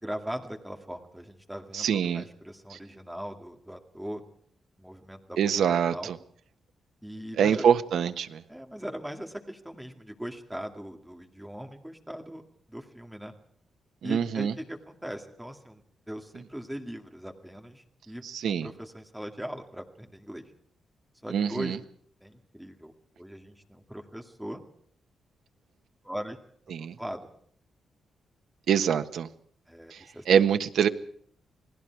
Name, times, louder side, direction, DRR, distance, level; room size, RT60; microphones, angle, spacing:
voice 1, 0.0-4.2 4.8-6.1 7.0-7.7 8.5-13.3 14.0-15.8 16.1-18.2 18.6-20.5 21.2-21.8 22.2-24.6 26.0-26.4 27.0-27.3 29.7-30.2, equal, 5° right, 3 dB, 2.2 m, -40 dB
voice 2, 1.7-2.2 5.4-6.2 7.4-8.4 14.0-14.5 18.2-18.7 21.3-21.8 26.7-26.9 28.7-29.3 29.9-30.9, right 8 dB, 70° right, 8 dB, 1.3 m, -25 dB
28.5 x 19.5 x 4.8 m, 0.64 s
wide cardioid pair, 180°, 0 cm